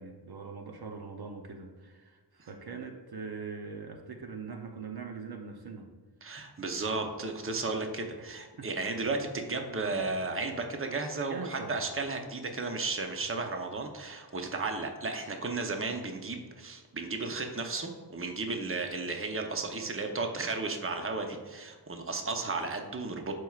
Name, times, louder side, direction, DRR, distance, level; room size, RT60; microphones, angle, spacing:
voice 1, 0.0-5.9 6.9-7.0 8.2-8.9 9.9-10.1 11.3-11.8 12.4-12.5, right 4 dB, 60° right, 3 dB, 0.7 m, -42 dB
voice 2, 6.2-23.3, right 3 dB, 30° right, 4 dB, 0.8 m, -34 dB
12.0 x 4.6 x 2.4 m, 1.4 s
wide cardioid pair, 90°, 43 cm